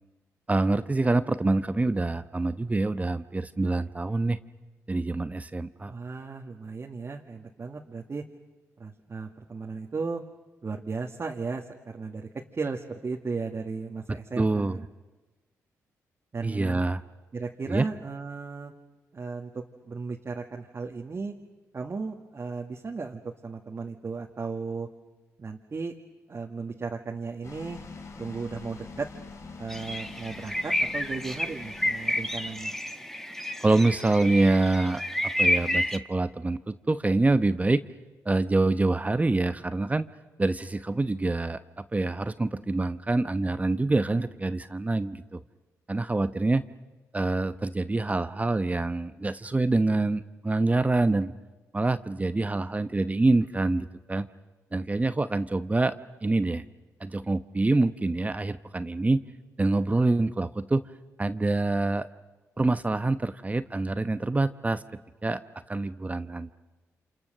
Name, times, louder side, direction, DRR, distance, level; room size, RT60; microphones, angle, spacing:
voice 1, 0.5-4.4 4.9-5.9 14.4-14.8 16.4-17.0 17.7-17.9 33.6-35.0 35.4-37.8 38.2-40.1 40.4-45.4 45.9-46.6 47.1-51.3 51.7-54.3 54.7-55.9 56.2-56.6 57.0-59.2 59.6-60.8 61.2-62.1 62.6-64.8 65.2-65.4 65.7-66.5, right 2 dB, 25° right, 12 dB, 1.0 m, -26 dB
voice 2, 5.9-8.2 8.8-10.2 10.6-14.9 16.3-16.8 17.3-18.7 19.1-21.3 21.7-24.9 25.4-25.9 26.3-27.8 28.2-29.1 29.6-32.7, right 4 dB, 45° right, 0 dB, 2.0 m, -35 dB
sound 1, 27.4-32.8, left 4 dB, 50° left, 3.3 m, -45 dB
sound 2, 29.7-36.0, left 1 dB, 5° left, 1.5 m, -30 dB
29.0 x 27.5 x 6.8 m, 1.2 s
supercardioid pair, 55°, 6 cm